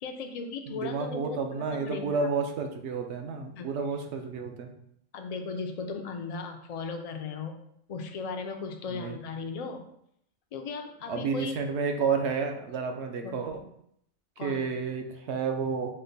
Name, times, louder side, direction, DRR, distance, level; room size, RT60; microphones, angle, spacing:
voice 1, 0.0-2.3 3.6-3.7 5.1-7.6 7.9-9.8 10.5-11.6 13.2-13.4 14.4-14.7, left 4 dB, 55° left, 4 dB, 0.4 m, -37 dB
voice 2, 0.7-4.7 8.9-9.2 11.1-13.6 14.4-16.0, right 5 dB, 70° right, 5 dB, 0.9 m, -31 dB
5.3 x 2.1 x 3.9 m, 0.72 s
omnidirectional pair, 1.2 m